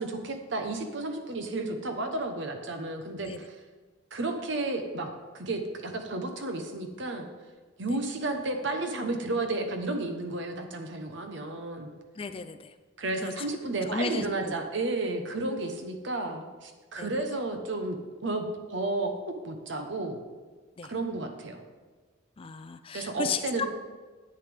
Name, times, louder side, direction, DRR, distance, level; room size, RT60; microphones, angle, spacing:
voice 1, 0.0-3.6 4.1-7.3 7.8-11.9 13.0-20.2 20.9-21.6 22.9-23.7, right 2 dB, 65° right, 5 dB, 1.0 m, -32 dB
voice 2, 12.2-12.7 13.2-13.3 13.9-14.6 17.0-17.1 20.8-20.9 22.4-23.7, left 5 dB, 30° left, 10 dB, 0.4 m, -34 dB
10.5 x 8.1 x 3.5 m, 1.4 s
head